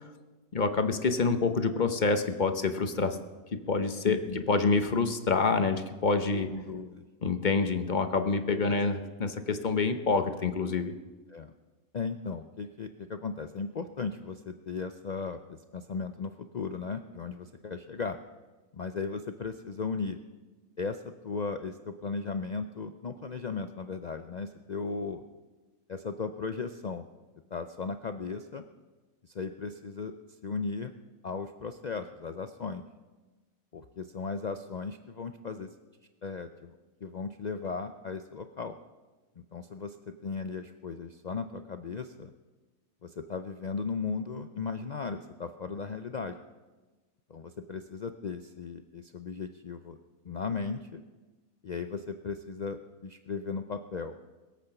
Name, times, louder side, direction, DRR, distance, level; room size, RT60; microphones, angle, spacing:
voice 1, 0.5-3.2 3.5-4.2 4.5-6.5 7.2-10.9, left 4 dB, 40° left, 8 dB, 0.8 m, -27 dB
voice 2, 4.0-4.5 6.5-7.0 8.6-8.8 11.3-11.5 11.9-18.2 18.7-20.2 20.8-25.2 25.9-27.1 27.5-28.6 29.2-30.1 30.4-30.9 31.2-32.8 33.7-35.7 36.2-38.8 39.4-42.3 43.0-46.4 47.3-50.0 50.2-51.0 51.6-54.2, left 4 dB, 80° left, 8 dB, 0.3 m, -36 dB
21.5 x 8.4 x 5.8 m, 1.2 s
omnidirectional pair, 1.5 m